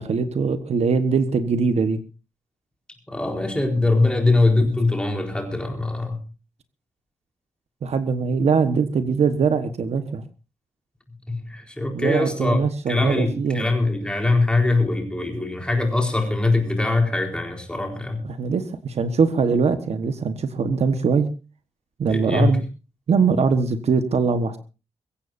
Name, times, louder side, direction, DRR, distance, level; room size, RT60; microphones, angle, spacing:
voice 1, 0.0-2.0 7.8-10.2 11.9-13.7 18.2-21.3 22.0-22.6 23.1-24.6, right 5 dB, 55° right, 10 dB, 1.4 m, -22 dB
voice 2, 3.1-6.2 11.3-12.6 12.9-18.2 22.1-22.5, left 2 dB, 5° left, 2 dB, 4.3 m, -22 dB
23.5 x 16.0 x 2.7 m, 0.32 s
wide cardioid pair, 165°, 13 cm